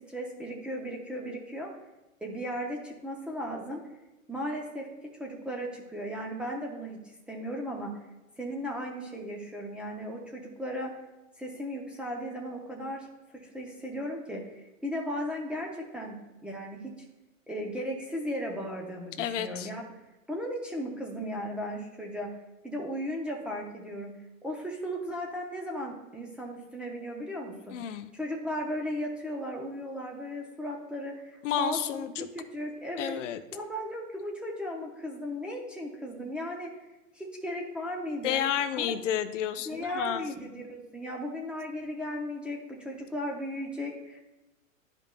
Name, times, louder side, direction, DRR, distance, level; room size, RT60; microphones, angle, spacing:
voice 1, 0.0-1.7 2.2-3.8 4.3-4.9 5.2-7.0 7.3-7.9 8.4-10.9 11.4-13.1 13.3-16.2 16.4-16.9 17.5-19.8 20.3-22.3 22.6-24.1 24.4-32.1 32.3-33.2 33.5-36.7 37.1-38.4 38.8-38.9 39.7-44.2, equal, 5° right, -1 dB, 0.6 m, -36 dB
voice 2, 19.2-19.7 27.7-28.1 31.4-32.3 33.0-33.4 38.2-40.2, left 10 dB, 65° left, 11 dB, 0.6 m, -31 dB
11.5 x 5.2 x 2.2 m, 1.0 s
hypercardioid pair, 135°, 40 cm